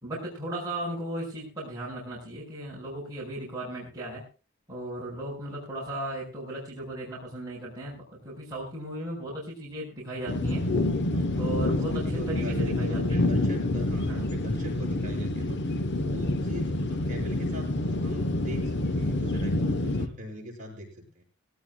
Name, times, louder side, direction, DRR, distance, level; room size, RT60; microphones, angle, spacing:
voice 1, 0.0-4.2 4.7-10.7 11.4-13.3 14.1-14.4, right 1 dB, 20° right, -5 dB, 5.3 m, -36 dB
sound 1, 10.3-20.1, left 2 dB, 55° left, 1.0 m, -27 dB
voice 2, 11.1-21.2, equal, 35° right, -2 dB, 7.7 m, -41 dB
18.5 x 17.5 x 2.3 m, 0.33 s
head